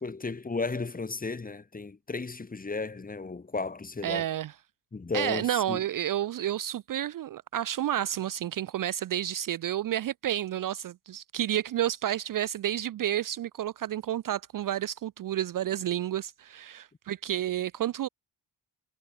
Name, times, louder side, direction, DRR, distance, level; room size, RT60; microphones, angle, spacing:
voice 1, 0.0-4.3 4.9-5.8, left 3 dB, 20° left, 2.7 m, -34 dB
voice 2, 4.0-4.5 5.1-18.1, right 11 dB, 50° right, 0.5 m, -30 dB
wide cardioid pair, 160°, 41 cm